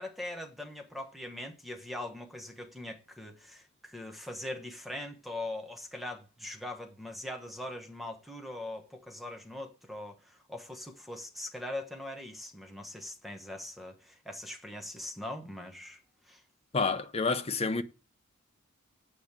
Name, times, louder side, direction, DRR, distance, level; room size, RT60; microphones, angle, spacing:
voice 1, 0.0-16.0 16.3-16.4, left 1 dB, ahead, 1.1 m, -41 dB
voice 2, 16.7-17.8, left 4 dB, 30° left, 0.7 m, -29 dB
8.6 x 5.0 x 7.3 m
head